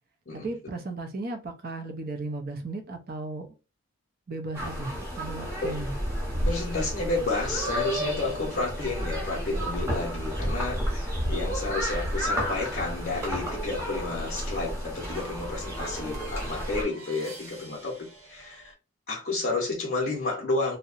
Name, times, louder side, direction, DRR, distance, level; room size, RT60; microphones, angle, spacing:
voice 1, 0.3-3.5 4.3-5.9, right 2 dB, 45° right, 0.5 m, -35 dB
sound 1, 4.5-16.8, equal, 10° right, 0.8 m, -31 dB
voice 2, 6.4-18.7 19.1-20.8, left 3 dB, 45° left, 0.6 m, -31 dB
sound 2, 11.0-18.7, right 2 dB, 75° right, 0.9 m, -50 dB
2.7 x 2.0 x 2.4 m
head